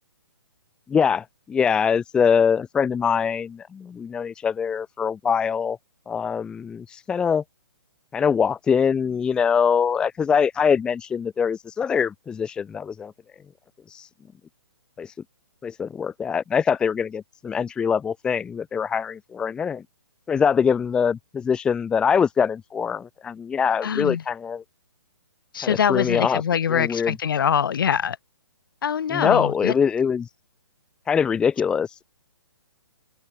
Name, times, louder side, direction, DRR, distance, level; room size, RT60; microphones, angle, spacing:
voice 1, 0.9-5.8 6.1-7.4 8.1-13.1 13.9-14.1 15.0-15.1 15.6-19.8 20.3-24.6 25.6-26.4 26.7-27.1 29.1-30.3 31.1-32.0, left 6 dB, 5° left, 0.9 m, -23 dB
voice 2, 23.8-24.2 25.5-28.2 28.8-29.7, left 8 dB, 55° left, 7.1 m, -23 dB
hypercardioid pair, 165°, 14 cm